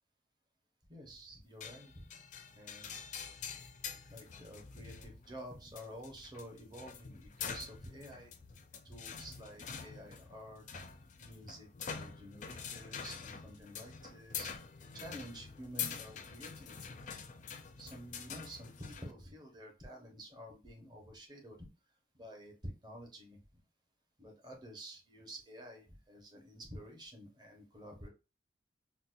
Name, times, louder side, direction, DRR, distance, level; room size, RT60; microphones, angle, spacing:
voice 1, 0.9-2.1 2.5-3.0 4.1-8.6 8.8-10.8 11.2-14.6 14.9-16.9 17.8-21.7 22.1-23.6 24.2-28.1, equal, 25° right, 1 dB, 0.9 m, -50 dB
sound 1, 1.6-19.1, left 7 dB, 40° left, 0.4 m, -46 dB
4.0 x 2.2 x 2.4 m, 0.31 s
head